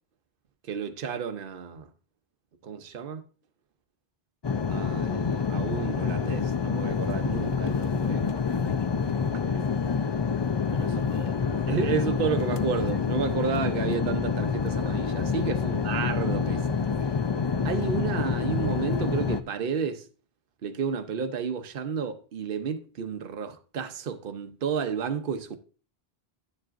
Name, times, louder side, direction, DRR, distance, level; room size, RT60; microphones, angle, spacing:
voice 1, 0.7-1.9 2.6-3.2 4.7-8.3 9.4-9.8 10.7-16.7 17.6-20.1 20.6-25.6, right 6 dB, 60° right, 0.9 m, -32 dB
sound 1, 4.4-19.4, left 5 dB, 40° left, 0.4 m, -27 dB
10.5 x 7.4 x 2.5 m
omnidirectional pair, 1.0 m